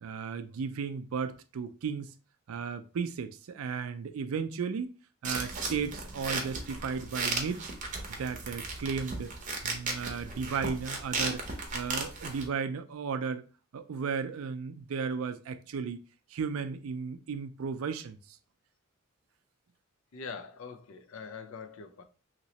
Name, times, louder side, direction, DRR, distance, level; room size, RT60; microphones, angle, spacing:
voice 1, 0.0-2.1 2.5-7.7 8.1-9.3 9.6-11.4 11.7-13.4 13.7-16.0 16.3-18.2, right 5 dB, 80° right, 0.4 m, -35 dB
sound 1, 5.2-12.5, right 3 dB, 40° right, 0.7 m, -36 dB
voice 2, 20.1-22.0, left 5 dB, 70° left, 0.5 m, -43 dB
3.0 x 2.9 x 2.8 m
head